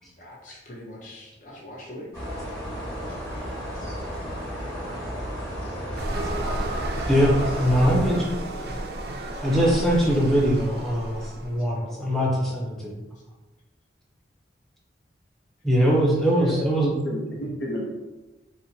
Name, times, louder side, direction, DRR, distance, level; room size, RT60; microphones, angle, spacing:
voice 1, 0.0-2.1 3.1-3.2 9.3-9.4 11.9-12.3, left 1 dB, 45° left, -4 dB, 0.8 m, -43 dB
sound 1, 2.1-8.1, equal, 20° left, 1.2 m, -33 dB
sound 2, 6.0-11.6, right 1 dB, 55° right, 0.4 m, -32 dB
voice 2, 7.6-8.4 9.4-13.0 15.6-16.9, equal, ahead, -4 dB, 0.6 m, -22 dB
voice 3, 16.2-17.8, equal, 75° left, -2 dB, 0.6 m, -32 dB
4.2 x 2.1 x 2.7 m, 1.1 s
head